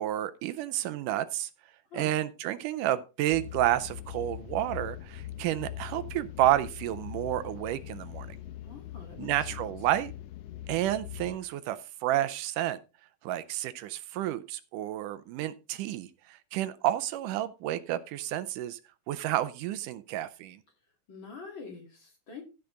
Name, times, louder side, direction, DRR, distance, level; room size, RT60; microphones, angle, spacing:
voice 1, 0.0-1.5 1.9-8.4 9.2-10.1 10.7-12.8 13.2-18.8 19.1-20.6, right 13 dB, 80° right, 2.2 m, -30 dB
voice 2, 1.9-2.2 8.6-9.6 21.1-22.4, left 5 dB, 40° left, 2.6 m, -45 dB
sound 1, 3.3-11.4, left 12 dB, 70° left, 1.5 m, -42 dB
15.0 x 5.9 x 3.8 m
omnidirectional pair, 3.8 m